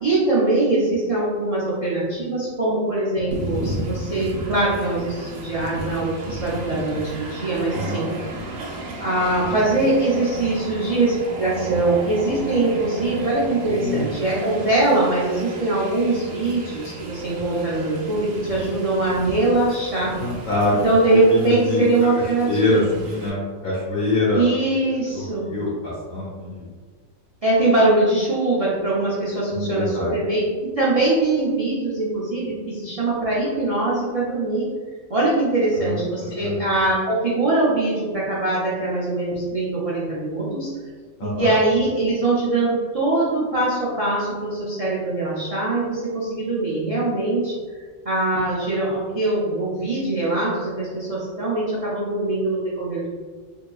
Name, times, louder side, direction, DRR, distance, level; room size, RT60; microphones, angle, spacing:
voice 1, 0.0-8.1 9.0-20.1 20.8-22.8 23.3-23.4 24.3-25.5 27.4-34.7 35.1-40.7 41.2-47.5 48.0-53.1, right 2 dB, 45° right, -8 dB, 0.4 m, -22 dB
Train, 3.3-23.3, right 2 dB, 75° right, 1.0 m, -34 dB
voice 2, 13.8-14.2 20.2-20.7 21.0-21.8 22.2-24.5 25.1-26.7 29.5-30.2 35.8-36.0 36.4-36.6 41.2-41.5, left 2 dB, 75° left, -6 dB, 1.2 m, -25 dB
3.7 x 2.8 x 2.3 m, 1.5 s
omnidirectional pair, 1.5 m